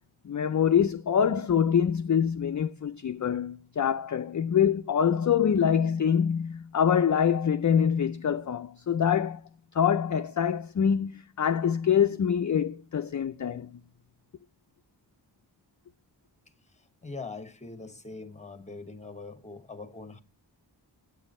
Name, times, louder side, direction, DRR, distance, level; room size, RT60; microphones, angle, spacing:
voice 1, 0.2-9.4 9.7-13.8, left 8 dB, 45° left, 0.4 m, -25 dB
voice 2, 17.0-20.2, left 3 dB, 15° left, 0.9 m, -42 dB
8.9 x 8.2 x 4.2 m
wide cardioid pair, 75°, 42 cm